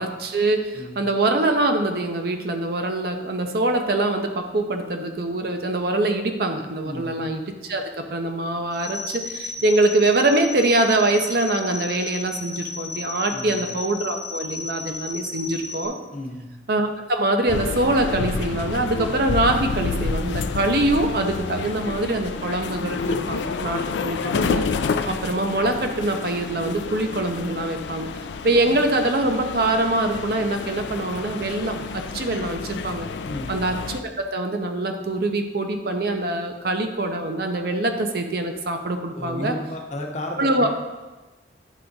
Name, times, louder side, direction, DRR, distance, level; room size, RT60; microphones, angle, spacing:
voice 1, 0.0-16.0 16.7-24.7 25.1-28.1 28.4-33.1 33.5-39.6 40.4-40.7, right 2 dB, 55° right, 5 dB, 0.6 m, -24 dB
voice 2, 6.8-7.2 13.3-13.6 16.1-16.5 33.2-33.5 39.1-40.7, left 1 dB, 40° left, 1 dB, 0.8 m, -33 dB
sound 1, 8.7-15.9, left 4 dB, ahead, 0.7 m, -34 dB
sound 2, 17.5-34.0, left 4 dB, 80° left, 0.4 m, -29 dB
10.0 x 3.4 x 3.9 m, 1.2 s
head